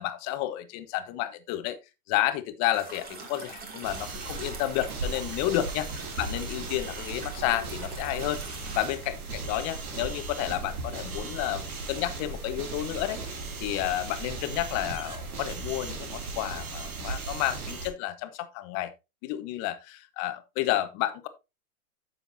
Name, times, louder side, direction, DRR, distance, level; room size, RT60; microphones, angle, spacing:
voice 1, 0.0-1.8 2.1-5.9 6.2-8.4 8.8-13.2 13.6-18.9 19.2-21.3, left 14 dB, 35° left, 1.2 m, -31 dB
sound 1, 2.7-8.9, right 3 dB, 20° right, 2.3 m, -43 dB
sound 2, 3.8-17.9, right 3 dB, 80° right, 2.9 m, -37 dB
9.9 x 7.0 x 2.8 m
hypercardioid pair, 115°, 44 cm